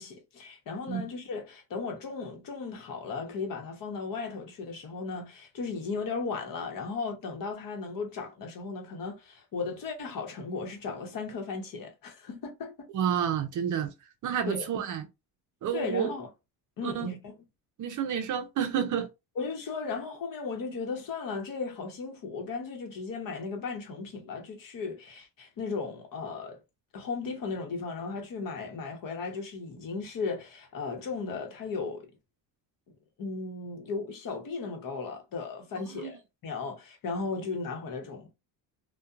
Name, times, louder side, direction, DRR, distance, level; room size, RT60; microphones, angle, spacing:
voice 1, 0.0-12.9 14.5-14.9 15.7-16.3 16.8-17.3 19.4-26.6 26.9-32.1 33.2-38.3, left 4 dB, 50° left, 0.9 m, -36 dB
voice 2, 12.9-13.9 14.2-15.1 15.6-16.1 16.8-17.1 17.8-19.1 35.9-36.1, right 8 dB, 45° right, 0.5 m, -30 dB
2.7 x 2.2 x 2.3 m
cardioid pair, 120°, 41 cm